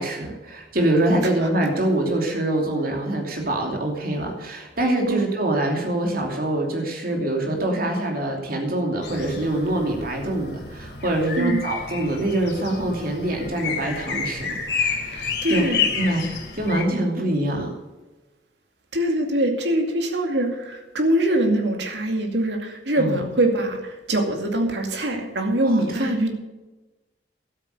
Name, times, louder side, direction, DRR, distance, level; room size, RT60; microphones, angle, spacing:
voice 1, 0.0-15.6 16.0-17.7 23.0-23.2 25.6-26.1, right 1 dB, 55° right, 1 dB, 2.9 m, -25 dB
sound 1, 9.0-16.8, left 6 dB, 70° left, 3.0 m, -30 dB
voice 2, 15.1-15.9 18.9-26.3, right 1 dB, 80° right, 4 dB, 2.3 m, -23 dB
12.5 x 8.7 x 6.8 m, 1.1 s
head